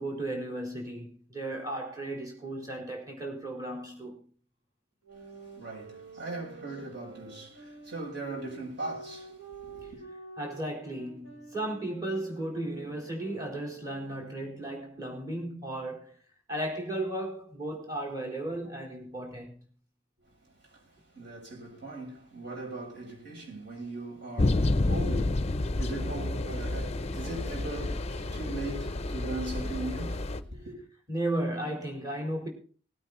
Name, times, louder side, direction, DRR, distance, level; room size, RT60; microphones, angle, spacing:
voice 1, 0.0-4.2 10.4-16.1 16.5-19.6 31.1-32.5, right 1 dB, 15° right, 4.4 m, -35 dB
sound 1, 5.0-14.7, right 4 dB, 65° right, 5.8 m, -49 dB
voice 2, 5.5-10.0 20.7-20.8 21.1-30.8, right 2 dB, 50° right, 7.6 m, -39 dB
sound 2, 24.4-30.4, left 2 dB, 30° left, 0.6 m, -30 dB
19.5 x 9.1 x 4.2 m
head